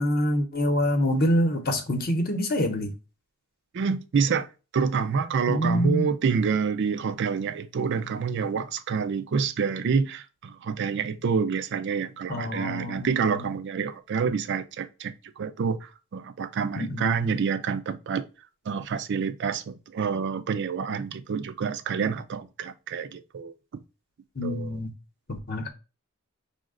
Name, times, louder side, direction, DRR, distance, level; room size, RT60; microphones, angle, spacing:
voice 1, 0.0-2.9 5.5-6.1 12.3-13.5 16.7-17.3 24.4-24.9 25.3-25.7, equal, 45° left, 0.8 m, -26 dB
voice 2, 3.7-4.5 4.7-18.2 18.7-23.5 24.4-24.7, right 6 dB, 55° right, 0.4 m, -27 dB
5.4 x 2.1 x 3.6 m
head